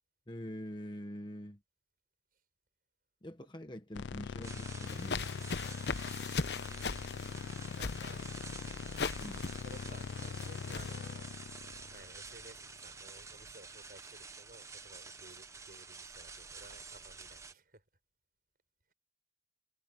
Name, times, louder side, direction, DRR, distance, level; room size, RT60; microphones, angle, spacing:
voice 1, 0.3-1.6 3.2-5.3 9.2-9.4, equal, 25° left, 1.2 m, -44 dB
sound 1, 3.9-13.1, left 5 dB, 90° left, 0.4 m, -42 dB
sound 2, 4.4-17.5, right 4 dB, 15° right, 0.9 m, -50 dB
sound 3, 4.9-10.9, left 4 dB, 70° left, 0.9 m, -39 dB
voice 2, 6.0-6.8 7.0-8.3 9.3-11.4 11.9-17.8, right 2 dB, 50° right, 6.5 m, -57 dB
head